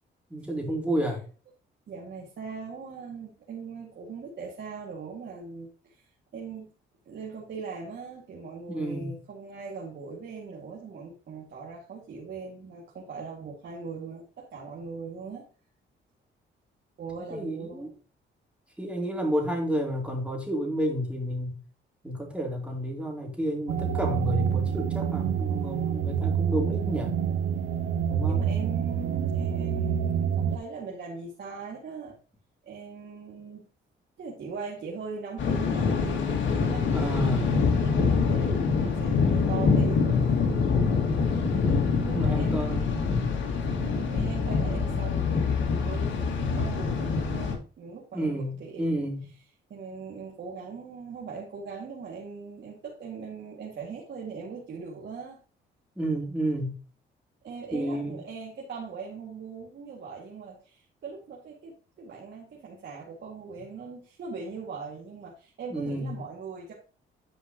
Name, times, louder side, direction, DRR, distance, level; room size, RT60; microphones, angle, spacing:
voice 1, 0.3-1.2 8.7-9.2 17.2-17.9 18.8-21.6 22.0-27.1 28.1-28.4 36.9-37.6 42.1-42.8 48.1-49.2 56.0-56.7 57.7-58.2 65.7-66.2, equal, 5° right, 3.7 m, -30 dB
voice 2, 1.9-6.1 6.3-6.7 7.1-15.5 17.0-17.9 28.3-32.2 32.6-33.7 34.2-40.3 42.0-43.1 43.8-49.1 49.7-55.4 57.4-66.7, right 5 dB, 60° right, 2.3 m, -40 dB
sound 1, 23.7-30.6, right 8 dB, 90° right, 0.8 m, -27 dB
Thunder, 35.4-47.5, left 5 dB, 70° left, 2.3 m, -25 dB
10.5 x 5.7 x 3.1 m
cardioid pair, 90°, 20 cm